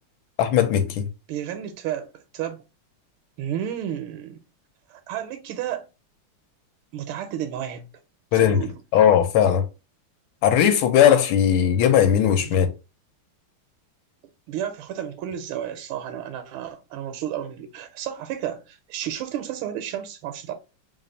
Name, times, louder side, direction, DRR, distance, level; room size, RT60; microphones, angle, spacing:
voice 1, 0.4-1.1 8.3-8.6 8.9-9.6 10.4-12.7, left 9 dB, 80° left, 1.4 m, -18 dB
voice 2, 1.3-2.6 3.4-4.4 4.9-5.9 6.9-7.9 8.3-8.8 12.4-12.6 14.5-20.5, right 10 dB, 85° right, 1.5 m, -32 dB
3.5 x 2.4 x 3.9 m
omnidirectional pair, 2.3 m